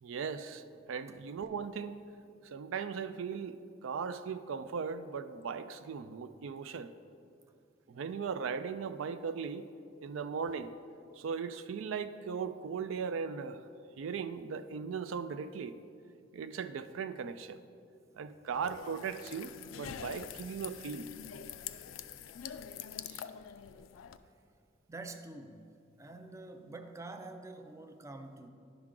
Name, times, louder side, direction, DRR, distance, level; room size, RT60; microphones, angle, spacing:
voice 1, 0.0-2.0 2.4-6.9 7.9-9.7 10.0-10.7 11.1-13.7 14.0-15.8 16.3-17.6 18.1-21.1 23.1-23.2, right 6 dB, 80° right, 11 dB, 0.4 m, -38 dB
sound 1, 18.5-24.2, left 9 dB, 75° left, 0.3 m, -45 dB
voice 2, 24.9-25.7 26.0-28.5, right 2 dB, 15° right, 7 dB, 0.4 m, -46 dB
10.5 x 6.0 x 3.7 m, 2.4 s
head